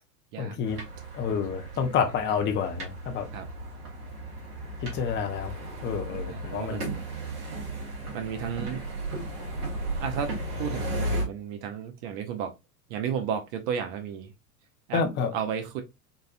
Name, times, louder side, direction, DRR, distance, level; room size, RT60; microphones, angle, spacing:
voice 1, 0.4-0.8 1.1-3.3 4.8-5.5 5.8-6.9 14.9-15.3, left 6 dB, 25° left, 0.6 m, -29 dB
sound 1, 0.6-11.2, right 1 dB, 70° right, 1.8 m, -35 dB
voice 2, 6.3-7.0 8.1-8.8 10.0-12.5 12.9-14.3 14.9-15.0 15.3-15.8, right 8 dB, 50° right, 0.8 m, -33 dB
4.0 x 2.5 x 2.4 m
figure-of-eight pair, 85°, 48 cm